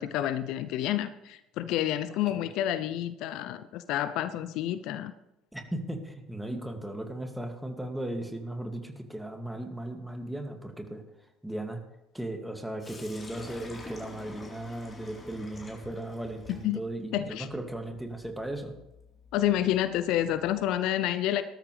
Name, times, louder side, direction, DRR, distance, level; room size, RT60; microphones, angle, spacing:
voice 1, 0.0-5.1 16.5-16.8 17.1-17.5 19.3-21.4, left 12 dB, 60° left, 12 dB, 0.6 m, -29 dB
voice 2, 5.5-11.0 11.4-11.8 12.1-18.7, right 1 dB, 5° right, 4 dB, 2.4 m, -37 dB
Sink (filling or washing), 12.8-20.7, left 2 dB, 25° left, 3.9 m, -49 dB
18.5 x 13.0 x 3.4 m, 0.90 s
figure-of-eight pair, 60°, 0 cm